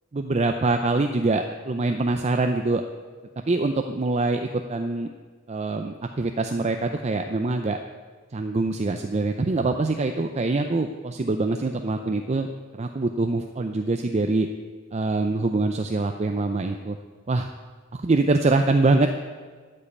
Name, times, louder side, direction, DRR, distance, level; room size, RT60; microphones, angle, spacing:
voice 1, 0.1-2.8 3.5-5.1 5.5-7.8 8.3-12.5 12.7-14.5 14.9-17.0 17.3-17.5 17.9-19.1, right 3 dB, 35° right, 6 dB, 0.5 m, -24 dB
12.5 x 5.5 x 8.5 m, 1.5 s
head